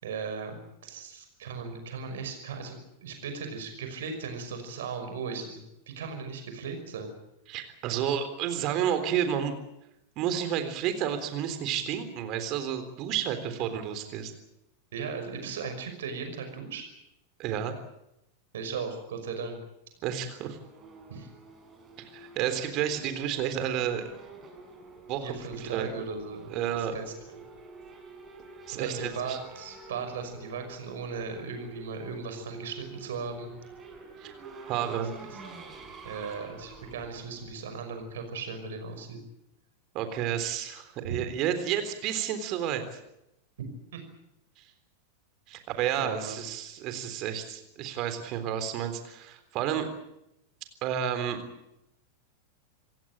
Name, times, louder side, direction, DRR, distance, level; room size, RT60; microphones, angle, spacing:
voice 1, 0.0-7.1 14.9-16.9 18.5-19.6 21.1-21.3 25.2-27.1 28.7-33.5 36.0-39.2 41.0-41.3 43.9-44.0 46.0-46.4, right 5 dB, 60° right, 7 dB, 5.7 m, -37 dB
voice 2, 7.5-9.5 10.2-14.3 17.4-17.7 20.0-20.6 22.1-24.0 25.1-25.9 26.5-27.0 28.7-29.4 34.2-34.3 34.6-35.1 39.9-43.0 44.6-44.7 45.5-49.9 50.8-51.4, right 9 dB, 40° right, 9 dB, 3.6 m, -31 dB
Race car auto racing / Accelerating revving vroom, 20.2-38.2, right 3 dB, 20° right, 6.3 m, -48 dB
27.0 x 16.5 x 9.0 m, 0.86 s
figure-of-eight pair, 90°, 0 cm